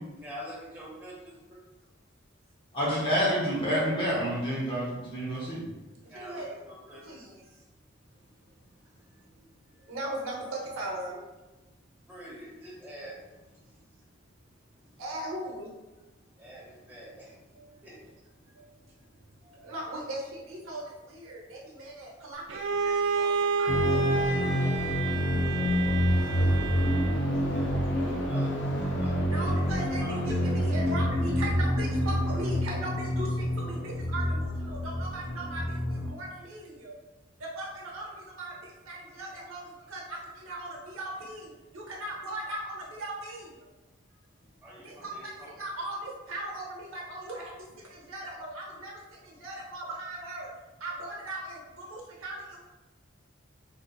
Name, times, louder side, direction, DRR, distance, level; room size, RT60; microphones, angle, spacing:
voice 1, 0.2-1.1 6.1-7.0 12.1-13.3 16.4-17.3 17.8-17.9 27.5-29.5 30.0-30.2 44.6-45.5, equal, 10° right, -7 dB, 0.9 m, -45 dB
voice 2, 2.7-5.6, equal, 25° left, -6 dB, 0.9 m, -28 dB
voice 3, 6.1-6.5 6.9-7.4 9.9-11.2 15.0-15.7 17.5-17.8 18.6-18.7 19.4-23.3 23.6-24.7 29.2-36.9 37.4-43.5 44.8-45.3 45.6-50.5 50.8-52.6, right 1 dB, 90° right, -2 dB, 0.9 m, -39 dB
Bowed string instrument, 22.5-27.3, right 4 dB, 65° right, 0.4 m, -30 dB
sound 1, 23.7-36.1, equal, 60° left, 0.6 m, -28 dB
3.9 x 2.7 x 2.3 m, 1.1 s
head